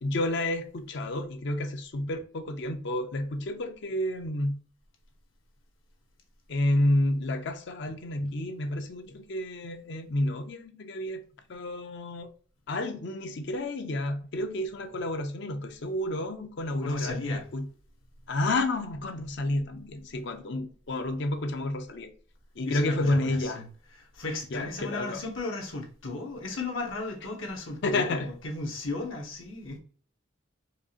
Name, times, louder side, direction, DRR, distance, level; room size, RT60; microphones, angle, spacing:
voice 1, 0.0-4.6 6.5-11.2 11.5-12.3 12.7-17.7 18.3-22.1 22.6-23.6 24.5-25.2 27.8-28.3, left 1 dB, 60° left, 0.5 m, -30 dB
voice 2, 16.8-17.4 22.6-23.7 24.0-29.8, left 3 dB, 85° left, 1.1 m, -35 dB
4.8 x 2.4 x 2.8 m
head